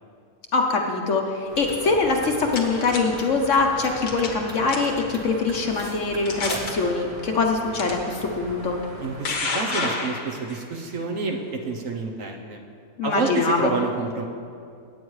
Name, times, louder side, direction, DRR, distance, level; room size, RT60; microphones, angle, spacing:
voice 1, 0.5-8.8 13.0-13.7, left 4 dB, 55° left, 2 dB, 1.0 m, -23 dB
sound 1, 1.4-6.9, right 1 dB, 5° right, 1.1 m, -41 dB
sound 2, 1.5-9.3, equal, 40° right, 1.7 m, -40 dB
sound 3, 2.3-3.0 4.0-4.4 4.7-5.0 5.7-5.8 6.3-6.7 7.8-7.9 8.8-10.6, left 3 dB, 85° left, 1.9 m, -29 dB
voice 2, 9.0-12.6 13.0-14.2, right 4 dB, 60° right, 2 dB, 1.2 m, -28 dB
16.5 x 9.0 x 3.2 m, 2.3 s
omnidirectional pair, 1.7 m